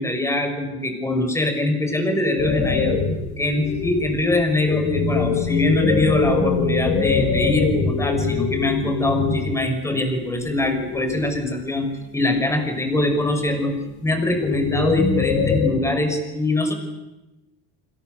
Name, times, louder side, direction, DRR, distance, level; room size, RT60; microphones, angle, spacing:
voice 1, 0.0-3.0 3.4-11.9 12.1-13.7 14.0-16.7, left 2 dB, 10° left, 5 dB, 5.8 m, -23 dB
sound 1, 2.4-9.7 10.2-11.5 12.0-12.5 13.1-15.7, left 5 dB, 80° left, 7.2 m, -24 dB
28.5 x 26.5 x 6.8 m, 1.0 s
cardioid pair, 140°, 30 cm